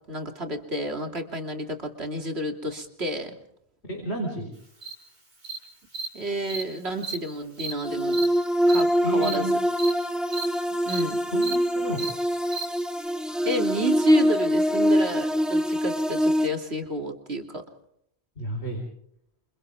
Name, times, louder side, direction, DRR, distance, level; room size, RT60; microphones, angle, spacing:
voice 1, 0.0-3.3 6.1-8.2 8.7-9.5 10.8-11.2 13.4-17.6, right 1 dB, 75° right, 4 dB, 3.3 m, -31 dB
voice 2, 3.9-4.5 9.0-9.5 11.3-12.1 18.4-18.8, right 1 dB, 80° left, 2 dB, 4.9 m, -31 dB
Cricket, 4.8-4.9 5.4-5.6 5.9-6.1 6.5-6.6 7.0-7.2 7.6-7.7 8.1-8.3 8.7-8.8 9.2-9.3 9.8-9.9 10.3-10.4 10.9-11.0 11.4-11.5 12.0-12.1 12.5-12.6, right 5 dB, 45° right, 5.2 m, -33 dB
sound 1, 7.8-16.5, equal, ahead, 2.0 m, -24 dB
29.5 x 28.0 x 3.6 m, 0.72 s
omnidirectional pair, 1.1 m